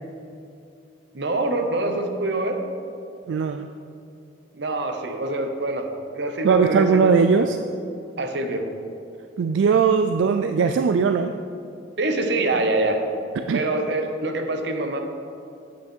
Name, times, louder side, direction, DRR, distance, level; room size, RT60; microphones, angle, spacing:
voice 1, 1.1-2.6 4.5-5.9 6.1-7.1 7.4-7.5 8.2-8.6 12.0-13.0 13.5-15.0, right 2 dB, 60° right, 5 dB, 0.9 m, -25 dB
voice 2, 3.3-3.7 6.4-7.6 9.4-11.3 13.4-13.6, right 5 dB, 80° right, 8 dB, 0.3 m, -19 dB
8.2 x 7.9 x 4.4 m, 2.6 s
head